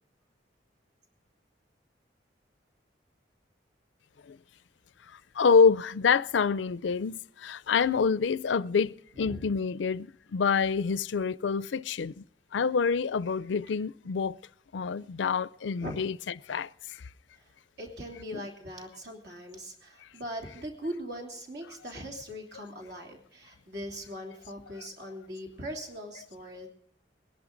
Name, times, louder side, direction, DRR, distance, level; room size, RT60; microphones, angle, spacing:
voice 1, 5.4-12.2 12.5-14.4 14.7-16.2 16.5-17.0 18.3-18.4, left 5 dB, 80° left, 0.4 m, -27 dB
voice 2, 9.1-9.5 15.8-16.0 17.4-17.5 17.8-26.7, equal, 60° right, 3.1 m, -40 dB
21.5 x 11.0 x 3.9 m
head